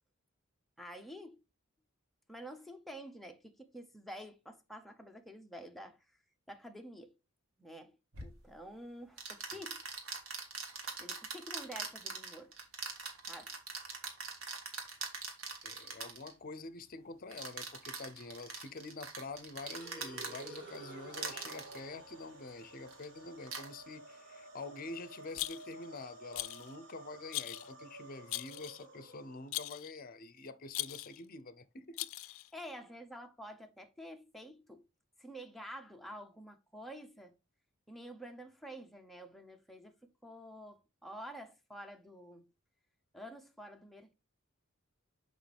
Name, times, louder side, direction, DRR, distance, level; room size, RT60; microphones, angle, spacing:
voice 1, 0.8-1.4 2.3-6.2 6.5-7.1 7.6-9.9 11.0-12.5 13.2-13.6 32.5-34.9 35.2-37.3 37.9-42.5 43.1-44.1, equal, ahead, 0.8 m, -49 dB
sound 1, 8.1-8.3 9.2-16.3 17.3-20.8 21.1-21.8 22.9-23.1 23.4-23.7, right 4 dB, 80° right, 1.8 m, -42 dB
voice 2, 15.6-32.0, left 3 dB, 45° left, 0.7 m, -47 dB
sound 2, 19.5-29.7, right 2 dB, 60° right, 2.4 m, -52 dB
Rattle, 25.3-25.9 26.3-26.7 27.3-27.7 28.3-28.8 29.5-29.9 30.7-31.2 32.0-32.5, left 18 dB, 80° left, 0.4 m, -40 dB
6.4 x 5.1 x 3.4 m
head